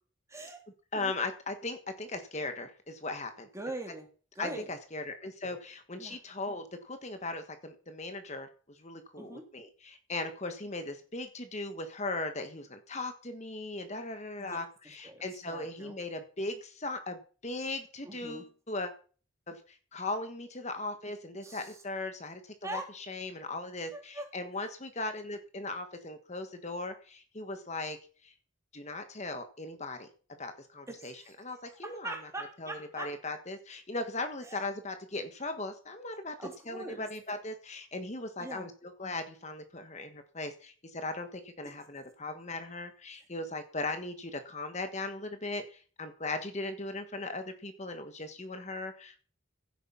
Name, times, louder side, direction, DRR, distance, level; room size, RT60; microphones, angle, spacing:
voice 1, 0.3-0.6 0.9-1.1 3.5-4.1 4.3-4.7 6.0-6.2 9.2-9.5 14.4-14.6 15.0-16.0 18.0-18.5 21.4-21.8 22.6-22.9 23.9-24.3 30.9-33.1 34.4-34.7 36.4-37.1 38.4-38.7 43.1-43.2, right 2 dB, 15° right, 3 dB, 3.1 m, -43 dB
voice 2, 0.9-3.5 4.4-18.9 19.5-28.0 28.2-28.3 28.7-30.1 30.4-31.1 31.4-32.1 32.6-38.7 39.0-49.2, left 2 dB, 35° left, 8 dB, 1.5 m, -38 dB
16.5 x 9.2 x 5.7 m, 0.39 s
head